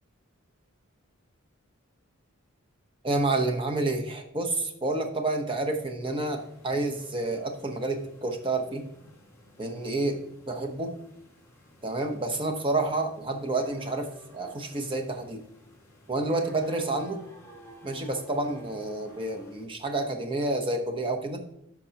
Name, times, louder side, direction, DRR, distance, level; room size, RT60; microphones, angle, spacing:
voice 1, 3.0-8.9 9.6-10.2 10.5-10.9 11.8-15.4 16.1-17.2 17.8-21.4, right 2 dB, 25° right, 4 dB, 0.9 m, -29 dB
sound 1, 6.0-19.6, equal, 15° left, 1.8 m, -53 dB
10.5 x 6.1 x 2.9 m, 0.78 s
head